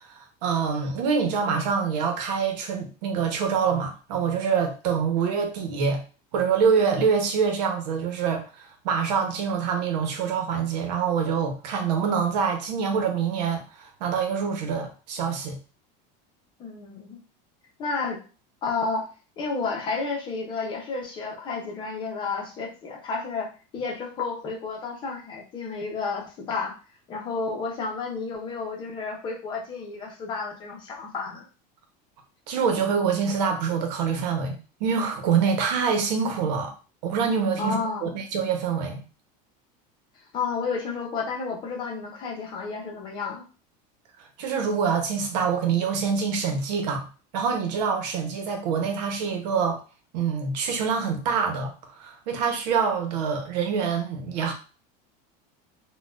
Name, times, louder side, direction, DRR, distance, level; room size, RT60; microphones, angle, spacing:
voice 1, 0.0-6.0 6.3-15.6 32.5-36.7 37.0-39.0 44.4-47.1 47.3-49.8 50.1-54.5, right 6 dB, 90° right, 0.9 m, -25 dB
voice 2, 16.6-17.2 17.8-18.2 18.6-19.1 19.4-26.7 27.1-31.5 37.6-38.1 40.3-43.4, left 4 dB, 25° left, 0.7 m, -31 dB
4.1 x 2.3 x 2.4 m
cardioid pair, 180°, 21 cm